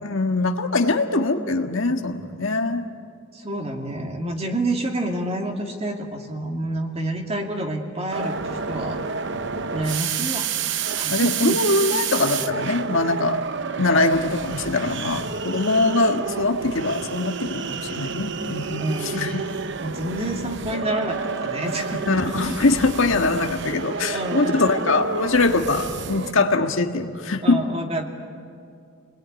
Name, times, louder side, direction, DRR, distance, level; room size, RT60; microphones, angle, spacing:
voice 1, 0.0-2.9 11.1-13.4 13.8-19.4 22.1-27.6, left 2 dB, 65° left, 5 dB, 1.6 m, -22 dB
voice 2, 3.3-9.0 9.7-10.5 11.0-11.6 18.8-19.4 19.8-22.0 24.1-24.6 27.4-28.1, right 1 dB, 30° right, 3 dB, 2.4 m, -28 dB
sound 1, 8.1-26.3, right 5 dB, 55° right, 0.8 m, -29 dB
30.0 x 20.5 x 9.7 m, 2.4 s
head